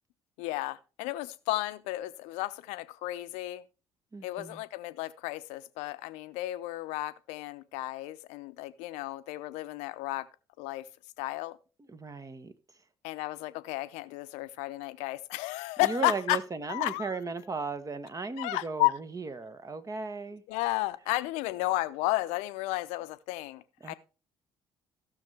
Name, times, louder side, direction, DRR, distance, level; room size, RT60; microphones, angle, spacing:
voice 1, 0.4-3.6 4.2-10.3 10.6-10.8 11.2-11.6 13.0-16.4 16.7-17.2 18.4-18.9 20.5-23.9, left 18 dB, 70° left, 0.7 m, -33 dB
voice 2, 4.1-4.6 11.9-12.5 15.8-20.4 23.8-23.9, right 4 dB, 30° right, 1.1 m, -36 dB
15.5 x 6.4 x 3.3 m
hypercardioid pair, 50°, 12 cm